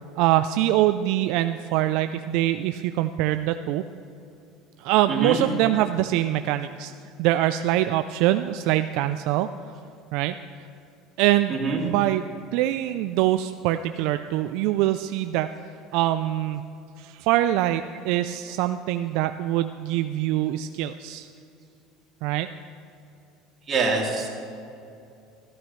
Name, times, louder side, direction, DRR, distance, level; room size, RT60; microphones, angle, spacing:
voice 1, 0.2-3.8 4.8-6.9 7.2-9.5 10.1-10.3 11.2-12.2 12.5-15.5 15.9-16.7 17.0-21.3 22.2-22.5, right 14 dB, 70° right, 9 dB, 0.3 m, -24 dB
voice 2, 23.7-24.3, right 4 dB, 35° right, -2 dB, 2.5 m, -25 dB
14.0 x 13.5 x 3.1 m, 2.6 s
supercardioid pair, 110°, 0 cm